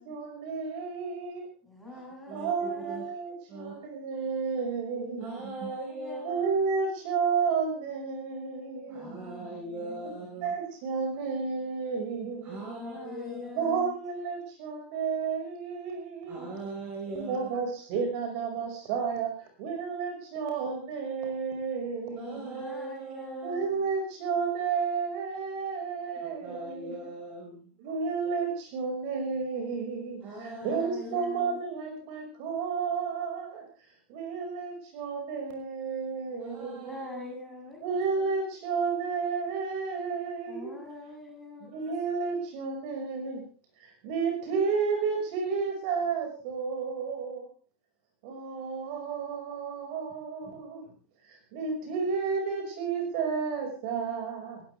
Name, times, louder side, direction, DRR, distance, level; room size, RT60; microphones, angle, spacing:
voice 1, 0.0-1.5 2.3-5.4 6.2-9.2 10.4-12.7 13.5-16.5 17.1-22.6 23.4-27.1 27.8-33.6 34.1-36.9 37.8-40.8 41.6-43.4 43.8-47.5 48.2-50.8 51.2-54.6, right 5 dB, 45° right, 4 dB, 5.6 m, -32 dB
voice 2, 1.7-3.0 5.9-6.2 8.9-10.1 12.8-13.9 16.4-16.5 22.4-23.8 30.4-31.6 36.8-37.8 40.5-41.7, left 3 dB, ahead, -3 dB, 7.8 m, -44 dB
voice 3, 2.3-3.0 3.5-3.7 5.2-6.5 8.9-10.5 12.2-13.5 16.3-17.5 22.1-23.6 26.4-27.7 30.2-31.2 36.4-37.4 50.4-50.5, right 2 dB, 25° right, 0 dB, 5.0 m, -40 dB
20.0 x 17.5 x 3.4 m, 0.39 s
supercardioid pair, 175°, 6 cm